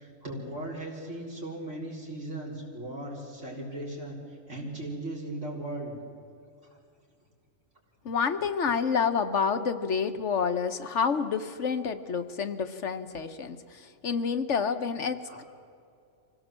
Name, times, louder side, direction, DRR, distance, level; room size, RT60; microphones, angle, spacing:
voice 1, 0.0-6.0 6.6-6.8 15.3-15.4, right 1 dB, 60° right, -2 dB, 4.7 m, -38 dB
voice 2, 8.0-15.4, left 6 dB, 65° left, 8 dB, 1.2 m, -29 dB
25.0 x 17.0 x 7.5 m, 2.4 s
omnidirectional pair, 1.4 m